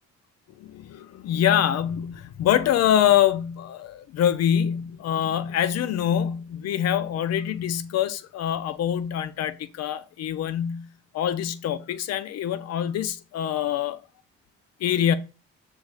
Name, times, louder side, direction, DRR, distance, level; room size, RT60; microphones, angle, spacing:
voice 1, 0.6-10.9 11.1-14.0 14.8-15.1, left 10 dB, 60° left, 0.5 m, -25 dB
5.4 x 2.3 x 3.2 m
supercardioid pair, 60°, 30 cm